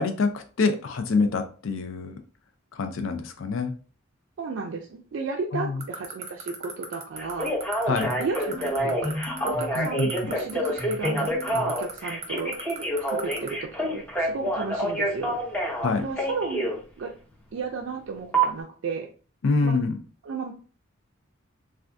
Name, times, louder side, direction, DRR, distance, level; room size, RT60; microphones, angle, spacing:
voice 1, 0.0-2.2 2.7-3.7 5.5-5.8 7.9-8.1 9.8-10.3 15.8-16.0 19.4-20.0, left 4 dB, 75° left, 7 dB, 0.4 m, -26 dB
voice 2, 4.4-7.5 8.2-9.2 9.4-12.6 13.1-15.4 16.0-16.7 17.0-17.1 17.5-19.1 19.6-19.8 20.2-20.5, right 4 dB, 65° right, 1 dB, 0.4 m, -33 dB
sound 1, 5.8-13.5, right 7 dB, 35° right, 0.7 m, -35 dB
Telephone, 7.2-16.8 18.3-18.5, right 1 dB, 5° left, 0.6 m, -27 dB
sound 2, 8.0-11.9, left 1 dB, 55° left, 1.2 m, -36 dB
2.5 x 2.3 x 3.4 m, 0.39 s
head